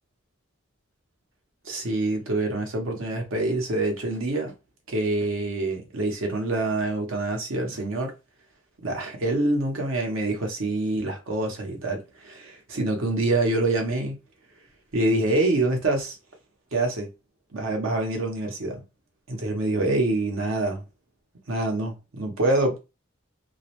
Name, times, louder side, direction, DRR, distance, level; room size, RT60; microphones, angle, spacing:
voice 1, 1.6-4.5 4.9-8.1 8.8-14.2 14.9-16.2 16.7-17.1 17.5-18.8 19.3-20.8 21.5-22.8, right 2 dB, 70° right, 0.8 m, -26 dB
2.3 x 2.0 x 2.8 m
head